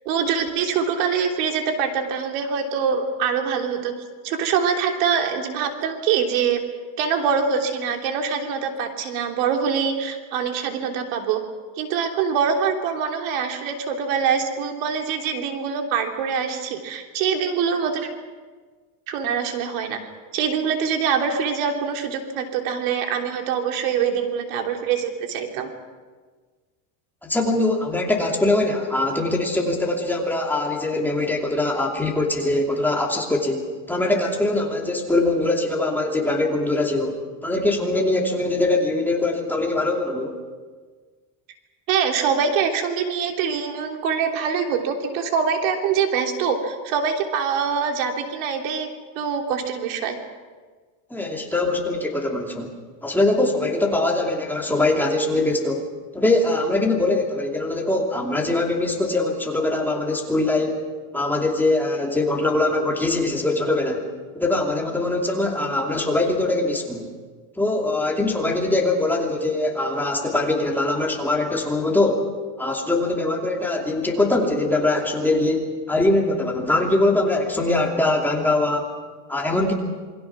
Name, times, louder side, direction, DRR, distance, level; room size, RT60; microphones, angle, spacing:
voice 1, 0.0-3.9 4.2-6.6 7.0-11.4 11.8-18.1 19.1-20.0 20.3-25.7 41.9-48.9 49.1-50.2, right 6 dB, 85° right, 4 dB, 3.3 m, -24 dB
voice 2, 27.2-40.4 51.1-52.7 53.0-55.8 56.1-60.8 61.1-64.0 64.3-67.1 67.6-72.2 72.6-78.9 79.3-79.7, left 2 dB, 5° left, 0 dB, 2.8 m, -22 dB
27.5 x 23.0 x 6.1 m, 1.4 s
cardioid pair, 160°, 40 cm